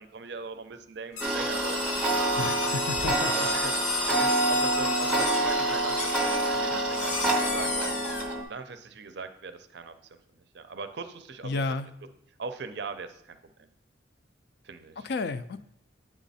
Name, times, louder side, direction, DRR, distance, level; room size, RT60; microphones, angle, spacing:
voice 1, 0.0-2.5 3.2-7.9 8.5-11.6 12.4-13.4 14.6-15.1, right 4 dB, 55° right, 10 dB, 0.5 m, -40 dB
sound 1, 1.1-8.2, left 4 dB, 80° left, 1.3 m, -33 dB
Tick-tock, 1.2-8.4, right 2 dB, 5° right, 0.6 m, -27 dB
voice 2, 2.4-3.3 11.4-11.9 15.0-15.6, left 3 dB, 55° left, 12 dB, 0.3 m, -31 dB
8.3 x 3.6 x 4.1 m, 0.79 s
head